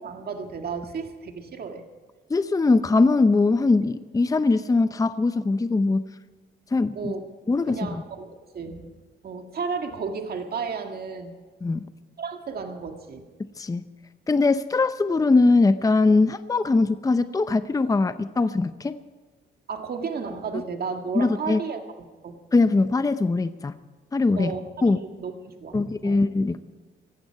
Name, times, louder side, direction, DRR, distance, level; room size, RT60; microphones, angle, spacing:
voice 1, 0.0-1.8 6.9-7.2 7.7-8.9 9.2-11.4 12.2-13.2 19.7-21.8 22.2-22.4 24.4-24.6 25.0-26.2, right 5 dB, 50° right, 5 dB, 1.9 m, -33 dB
voice 2, 2.3-6.1 6.7-7.1 7.5-8.0 11.6-11.8 13.6-13.9 14.3-18.9 20.5-20.6 21.1-21.6 22.5-23.8 24.1-24.5 24.8-25.0 25.7-26.6, left 3 dB, 15° left, 12 dB, 0.7 m, -21 dB
18.5 x 14.5 x 4.7 m, 1.4 s
cardioid pair, 90°, 20 cm